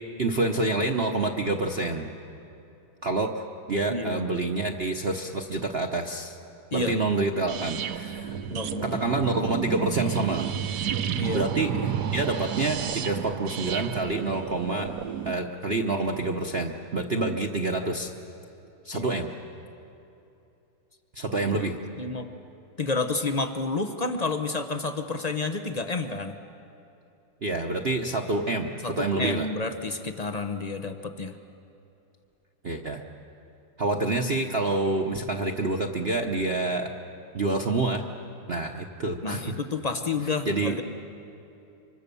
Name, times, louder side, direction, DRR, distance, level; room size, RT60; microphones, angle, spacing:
voice 1, 0.2-2.1 3.0-3.3 3.7-6.4 6.7-8.3 8.8-10.6 11.3-14.9 15.2-18.1 18.8-19.3 21.1-21.8 27.4-29.5 32.6-33.0 33.8-36.9 37.3-38.0 38.5-39.6 40.5-40.8, right 2 dB, 40° right, 3 dB, 0.9 m, -27 dB
voice 2, 3.9-4.2 6.7-6.9 8.5-9.1 11.2-11.4 18.9-19.2 21.4-21.6 22.0-22.3 22.8-26.4 28.8-31.4 39.2-40.8, left 3 dB, 50° left, 7 dB, 0.4 m, -30 dB
sound 1, 7.5-15.3, right 9 dB, 60° right, 1.2 m, -31 dB
25.5 x 25.0 x 6.9 m, 2.8 s
omnidirectional pair, 2.2 m